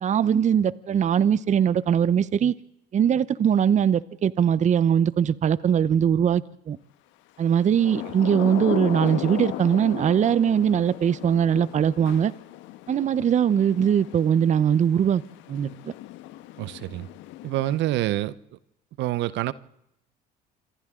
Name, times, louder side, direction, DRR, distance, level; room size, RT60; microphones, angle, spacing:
voice 1, 0.0-2.6 2.9-6.8 7.4-12.3 12.9-15.2 15.5-15.9, right 8 dB, 35° right, 0.8 m, -21 dB
Thunder / Rain, 7.5-18.1, left 14 dB, 75° left, 1.3 m, -36 dB
voice 2, 16.6-17.1 17.4-18.6 19.0-19.5, right 15 dB, 65° right, 0.9 m, -27 dB
27.5 x 25.0 x 3.8 m
supercardioid pair, 90°, 20 cm